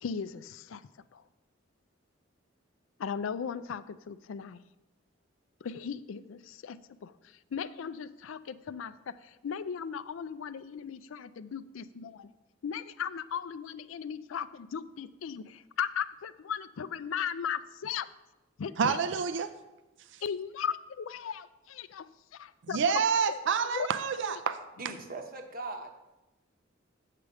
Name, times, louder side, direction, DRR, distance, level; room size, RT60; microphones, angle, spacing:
voice 1, 0.0-0.8 1.1-1.2 3.0-4.6 5.6-12.3 12.6-18.1 18.6-19.0 20.2-22.9 23.3-23.4 23.7-23.9 24.2-24.3, left 7 dB, 80° left, 0.4 m, -37 dB
voice 2, 18.8-19.5 22.7-24.6, right 6 dB, 65° right, 0.5 m, -28 dB
voice 3, 24.8-25.9, right 3 dB, 45° right, 1.0 m, -40 dB
7.6 x 4.9 x 7.0 m
head